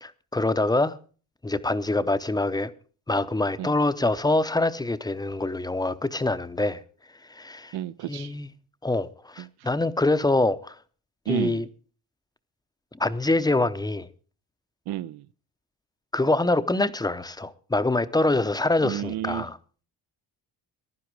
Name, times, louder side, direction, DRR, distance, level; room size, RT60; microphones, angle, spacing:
voice 1, 0.0-1.0 1.4-2.7 3.1-6.8 7.3-7.8 8.1-8.5 8.8-10.8 11.3-11.7 13.0-14.1 16.1-19.6, left 2 dB, 10° left, 0.7 m, -25 dB
voice 2, 7.7-8.3 11.3-11.6 14.9-15.2 18.8-19.4, right 12 dB, 65° right, 0.6 m, -30 dB
15.5 x 11.0 x 4.7 m
cardioid pair, 110°, 42 cm